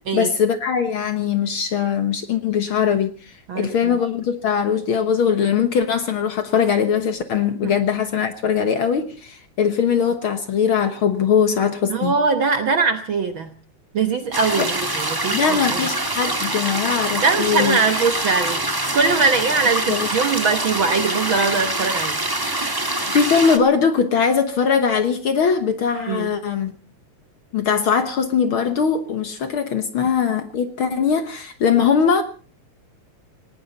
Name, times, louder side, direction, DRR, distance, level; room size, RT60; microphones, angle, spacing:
voice 1, 0.1-12.1 14.6-14.7 15.3-17.8 19.9-20.1 23.1-26.7 27.5-32.2, left 7 dB, 55° left, 1.7 m, -21 dB
voice 2, 3.5-4.0 7.6-7.7 11.9-13.5 13.9-15.9 17.2-18.6 18.9-22.2 26.1-26.3, right 4 dB, 60° right, 1.4 m, -21 dB
sound 1, 14.3-23.6, right 1 dB, 15° right, 0.9 m, -24 dB
18.5 x 18.5 x 4.1 m
omnidirectional pair, 3.3 m